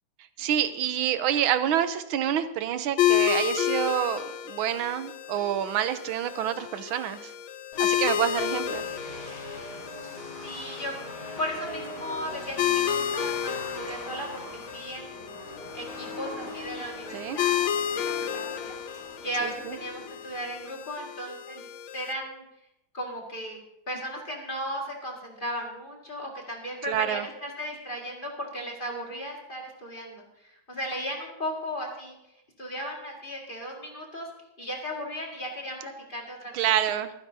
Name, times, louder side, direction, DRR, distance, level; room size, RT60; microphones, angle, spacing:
voice 1, 0.4-7.3 7.8-8.8 17.1-17.4 19.4-19.8 26.9-27.3 36.5-37.1, right 10 dB, 90° right, 11 dB, 1.6 m, -27 dB
sound 1, 3.0-22.1, left 10 dB, 80° left, 1.5 m, -31 dB
sound 2, 7.7-20.8, left 1 dB, 45° left, 3.3 m, -42 dB
voice 2, 10.4-10.9 11.4-15.3 15.7-21.6 21.9-22.4 22.9-32.2 32.6-34.3 34.6-36.7, equal, 25° left, -1 dB, 2.1 m, -36 dB
25.0 x 9.7 x 2.7 m, 0.86 s
omnidirectional pair, 2.2 m